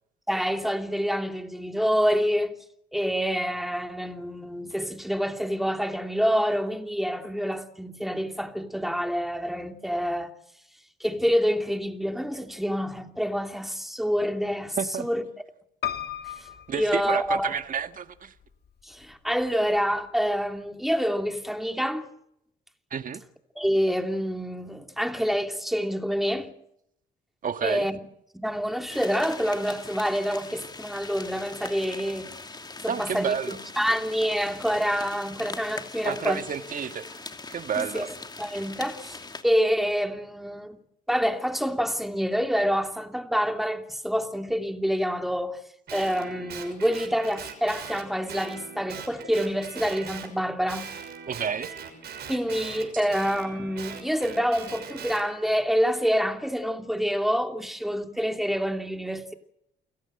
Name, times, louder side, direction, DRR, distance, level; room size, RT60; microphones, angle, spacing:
voice 1, 0.3-2.5 2.9-10.3 11.0-15.2 16.2-16.5 16.7-17.5 18.8-22.1 23.6-26.5 27.6-28.0 28.3-32.3 32.8-36.4 37.8-38.1 38.4-40.8 41.1-45.6 45.9-50.9 52.3-59.3, equal, ahead, 2.9 m, -27 dB
voice 2, 14.8-15.1 16.7-18.3 22.9-23.2 27.4-27.9 32.9-33.6 36.0-37.2 37.5-38.1 51.3-51.7, right 7 dB, 50° right, 1.7 m, -30 dB
Piano, 15.8-17.8 18.4-19.1 19.5-19.6 19.8-19.9, left 11 dB, 65° left, 2.6 m, -36 dB
sound 1, 28.9-39.4, left 3 dB, 25° left, 2.7 m, -41 dB
Guitar, 45.9-50.3 50.7-55.2, right 7 dB, 70° right, 6.3 m, -41 dB
29.0 x 17.0 x 7.9 m
cardioid pair, 90°, 18 cm